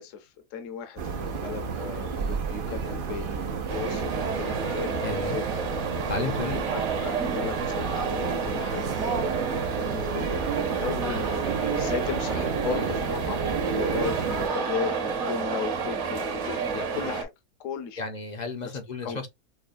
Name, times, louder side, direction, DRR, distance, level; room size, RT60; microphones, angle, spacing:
voice 1, 0.0-5.7 6.7-9.0 9.6-13.5 13.7-17.3 17.6-18.0 18.6-19.2, left 7 dB, 60° left, 1.0 m, -36 dB
sound 1, 1.0-14.5, right 6 dB, 75° right, 0.5 m, -31 dB
sound 2, 3.7-17.2, right 5 dB, 55° right, 1.1 m, -30 dB
voice 2, 5.0-5.4 6.1-6.6 12.7-12.9 18.0-19.3, left 4 dB, 45° left, 0.5 m, -33 dB
5.5 x 2.1 x 2.5 m
omnidirectional pair, 1.6 m